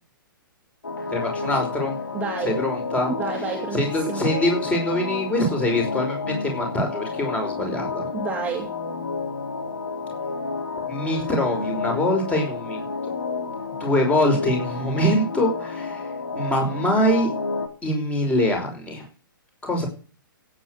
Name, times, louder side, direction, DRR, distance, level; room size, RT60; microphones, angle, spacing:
sound 1, 0.8-17.7, left 4 dB, 70° left, 3.1 m, -30 dB
voice 1, 1.1-2.0 2.4-3.1 3.7-8.1 10.9-12.9 13.8-16.1 16.4-17.3 17.8-19.0 19.6-19.9, left 1 dB, 10° left, 2 dB, 5.5 m, -24 dB
voice 2, 2.1-2.6 3.1-4.3 8.1-8.7, right 5 dB, 10° right, 1 dB, 2.4 m, -30 dB
16.5 x 8.9 x 6.5 m, 0.38 s
figure-of-eight pair, 115°, 12 cm